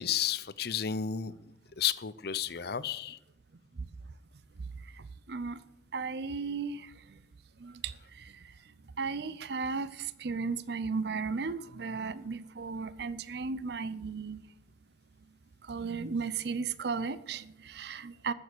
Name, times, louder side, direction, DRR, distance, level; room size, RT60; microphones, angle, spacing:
voice 1, 0.0-1.3 1.8-3.2, left 9 dB, 60° left, 16 dB, 0.6 m, -32 dB
voice 2, 5.3-5.6 5.9-6.9 7.6-8.3 9.0-14.4 15.7-18.3, right 4 dB, 60° right, 16 dB, 0.6 m, -35 dB
14.0 x 7.2 x 8.3 m, 0.92 s
head